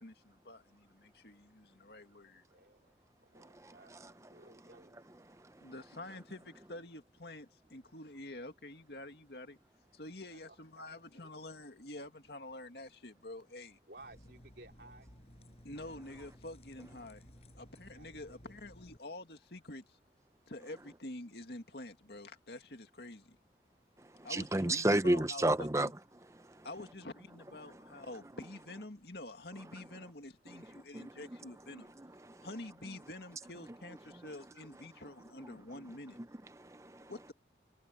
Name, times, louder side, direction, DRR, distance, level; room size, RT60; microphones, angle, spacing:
voice 1, 0.0-2.4 5.6-9.6 9.9-13.8 15.6-20.0 20.5-23.4 24.2-25.9 26.6-31.9 32.4-36.2 37.1-37.3, left 2 dB, 65° left, 2.2 m, -48 dB
voice 2, 2.5-2.9 3.3-5.4 5.7-5.8 10.3-11.3 13.9-15.1 17.9-18.5, right 2 dB, 65° right, 3.3 m, -58 dB
voice 3, 3.4-4.1 24.2-25.9 26.4-26.7 30.5-30.6 30.9-31.1 31.7-32.5 35.4-35.5 36.6-37.1, right 1 dB, 15° right, 0.7 m, -33 dB
sound 1, 14.0-19.0, equal, 35° left, 6.3 m, -57 dB
head